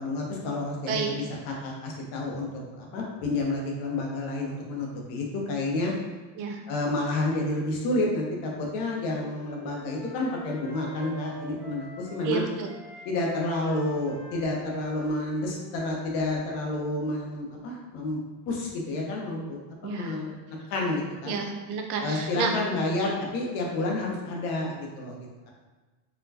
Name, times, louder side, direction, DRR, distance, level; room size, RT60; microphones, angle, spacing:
voice 1, 0.0-5.9 6.7-12.4 13.0-20.3 20.7-21.4 22.0-25.5, left 2 dB, 85° left, -1 dB, 1.0 m, -30 dB
Wind instrument woodwind instrument, 8.7-12.3 12.6-16.4, right 1 dB, 10° left, 0.9 m, -46 dB
voice 2, 12.2-12.7 19.8-20.2 21.2-22.5, right 5 dB, 80° right, 3 dB, 0.7 m, -30 dB
4.2 x 2.3 x 2.8 m, 1.3 s
cardioid pair, 135°, 41 cm